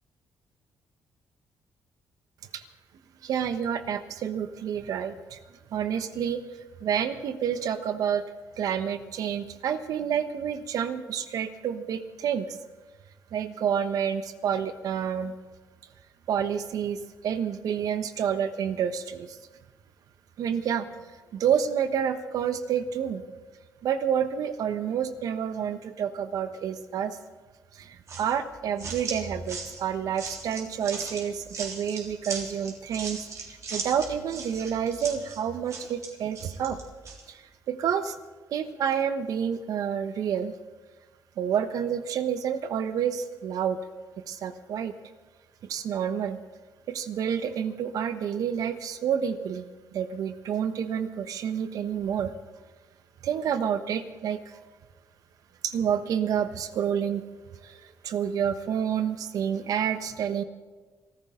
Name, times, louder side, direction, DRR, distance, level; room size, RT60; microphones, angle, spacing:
voice 1, 3.2-5.4 5.7-6.4 6.8-8.2 8.6-12.6 13.3-15.3 16.3-17.0 17.2-19.4 20.4-20.9 21.3-23.2 23.8-27.2 27.8-33.3 33.7-36.8 37.3-37.4 37.7-38.2 38.5-40.5 41.4-43.8 44.3-44.9 45.7-46.4 46.9-49.7 49.9-52.3 53.2-54.4 55.6-57.2 57.6-57.7 58.0-60.4, right 8 dB, 75° right, 9 dB, 1.2 m, -29 dB
sound 1, 28.1-37.2, right 4 dB, 55° right, 3.6 m, -38 dB
25.5 x 14.0 x 3.9 m, 1.3 s
cardioid pair, 85°, 6 cm